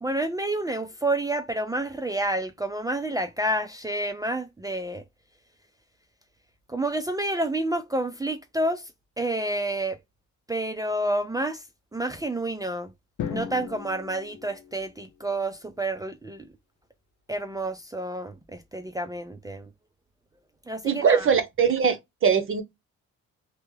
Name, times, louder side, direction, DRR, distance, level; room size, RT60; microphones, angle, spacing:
voice 1, 0.0-5.0 6.7-8.9 9.2-10.0 10.5-11.6 11.9-12.9 13.3-16.5 17.3-19.7 20.7-21.3, right 1 dB, 10° right, 0.4 m, -29 dB
Drum, 13.2-15.3, left 8 dB, 75° left, 0.6 m, -37 dB
voice 2, 20.8-22.6, right 6 dB, 45° right, 0.7 m, -22 dB
2.8 x 2.1 x 3.2 m
cardioid pair, 90°, 30 cm